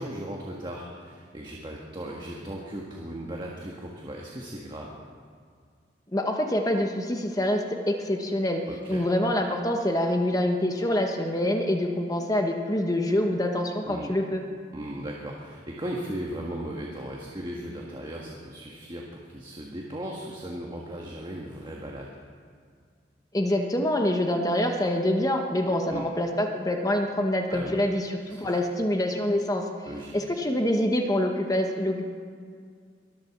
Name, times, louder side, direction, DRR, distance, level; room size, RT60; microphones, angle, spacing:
voice 1, 0.0-5.0 8.7-9.0 13.8-14.1 14.7-22.2 25.9-26.1 27.5-27.8 28.3-28.5 29.9-30.3, right 1 dB, 25° right, -2 dB, 1.6 m, -37 dB
voice 2, 6.1-8.6 8.9-14.4 23.3-29.7 30.1-32.1, left 1 dB, 20° left, 3 dB, 1.1 m, -26 dB
23.0 x 7.7 x 7.3 m, 2.1 s
head